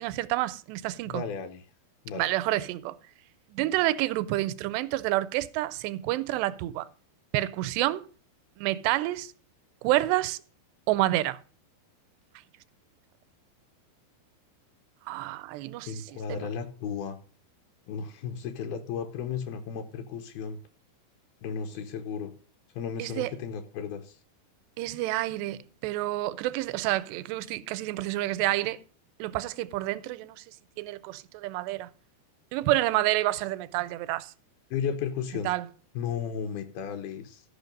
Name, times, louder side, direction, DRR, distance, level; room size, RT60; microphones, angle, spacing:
voice 1, 0.0-1.2 2.2-3.0 3.5-6.9 7.3-8.1 8.6-9.3 9.8-10.4 10.9-11.4 15.1-15.9 16.3-16.5 23.0-23.3 24.8-28.8 29.2-30.4 30.8-31.9 32.5-34.3 35.5-35.7, right 16 dB, 90° right, 2.7 m, -28 dB
voice 2, 1.1-1.6 2.1-2.3 15.9-17.2 17.9-20.6 21.4-22.3 22.8-24.2 34.7-35.5 36.0-37.4, left 7 dB, 75° left, 2.6 m, -34 dB
14.0 x 5.6 x 5.2 m
omnidirectional pair, 4.7 m